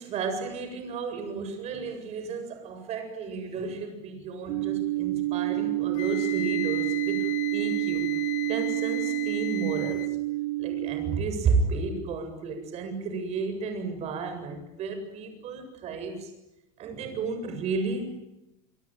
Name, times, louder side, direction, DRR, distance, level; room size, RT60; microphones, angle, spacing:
voice 1, 0.0-8.1 8.5-10.1 10.6-16.3 16.8-18.2, right 4 dB, 40° right, 7 dB, 7.7 m, -32 dB
sound 1, 4.5-11.2, right 18 dB, 80° right, 1.0 m, -28 dB
Wind instrument woodwind instrument, 5.9-10.1, left 15 dB, 50° left, 2.2 m, -37 dB
26.5 x 24.5 x 9.3 m, 0.91 s
supercardioid pair, 140°, 16 cm